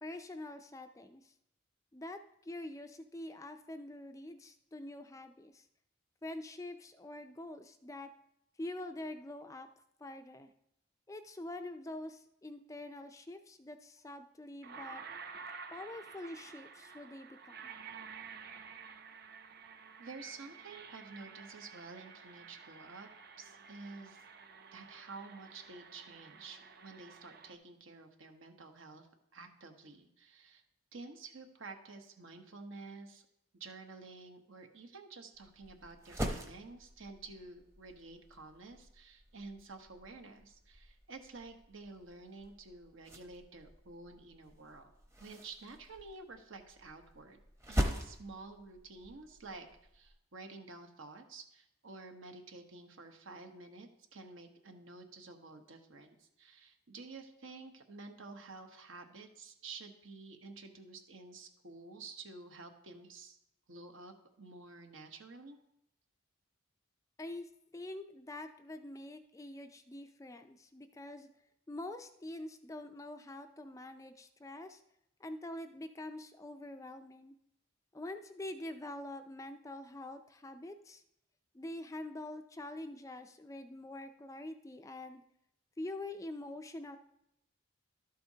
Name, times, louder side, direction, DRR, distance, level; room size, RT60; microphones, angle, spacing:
voice 1, 0.0-1.3 1.9-2.2 2.5-5.7 6.2-8.1 8.6-9.7 10.0-10.5 11.1-15.0 15.7-17.7 67.2-71.3 71.7-74.8 75.2-77.3 77.9-81.0 81.5-85.2 85.8-87.0, left 1 dB, 15° left, 8 dB, 0.4 m, -45 dB
sound 1, 14.0-14.1 14.6-27.6, right 5 dB, 50° right, 0.6 m, -51 dB
voice 2, 20.0-23.1 23.4-24.2 24.7-29.1 29.3-30.6 30.9-33.3 33.5-44.9 45.2-47.4 47.7-49.7 49.9-63.4 63.7-65.6, right 3 dB, 75° right, 5 dB, 1.1 m, -50 dB
sound 2, 35.3-50.1, equal, 15° right, 0.8 m, -43 dB
12.5 x 7.7 x 2.8 m, 0.81 s
head